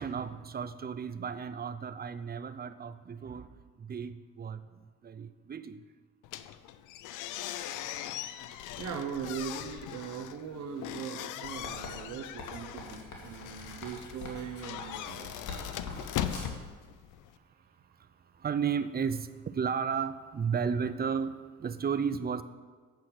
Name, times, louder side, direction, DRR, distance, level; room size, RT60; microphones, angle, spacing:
voice 1, 0.0-5.8 18.0-18.1 18.4-22.4, right 6 dB, 30° right, 12 dB, 0.6 m, -34 dB
sound 1, 6.2-17.4, left 11 dB, 90° left, 0.6 m, -40 dB
voice 2, 8.8-15.6, right 7 dB, 65° right, 4 dB, 1.1 m, -40 dB
Writing, 11.4-16.6, left 3 dB, 70° left, 2.5 m, -44 dB
8.8 x 7.6 x 6.1 m, 1.5 s
cardioid pair, 90°, 30 cm